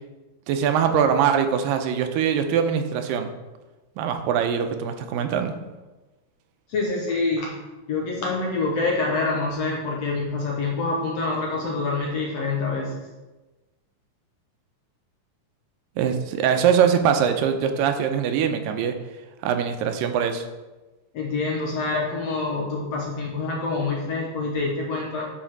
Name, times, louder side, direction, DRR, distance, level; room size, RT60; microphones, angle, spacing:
voice 1, 0.5-3.3 4.0-5.5 16.0-19.0 19.4-20.5, right 8 dB, 90° right, 7 dB, 2.3 m, -22 dB
voice 2, 6.7-7.5 7.9-13.1 21.1-25.3, left 3 dB, 65° left, -2 dB, 1.8 m, -26 dB
10.0 x 4.2 x 4.6 m, 1.1 s
omnidirectional pair, 4.0 m